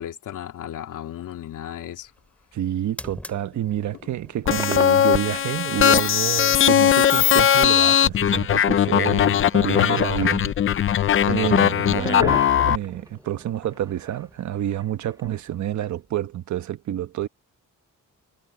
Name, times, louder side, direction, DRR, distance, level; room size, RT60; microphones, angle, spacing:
voice 1, 0.0-2.1, left 11 dB, 70° left, 3.1 m, -35 dB
sound 1, 1.1-16.4, left 1 dB, 5° left, 3.0 m, -49 dB
voice 2, 2.5-10.5 11.2-17.3, right 12 dB, 60° right, 1.2 m, -28 dB
sound 2, 4.5-12.8, left 9 dB, 40° left, 0.6 m, -19 dB
sound 3, 4.5-5.5 5.8-5.9 6.4-6.5 6.8-7.9 8.4-9.4 9.7-10.3 10.6-11.0 11.4-14.3 14.5-15.4, right 2 dB, 10° right, 2.3 m, -37 dB
cardioid pair, 175°, 32 cm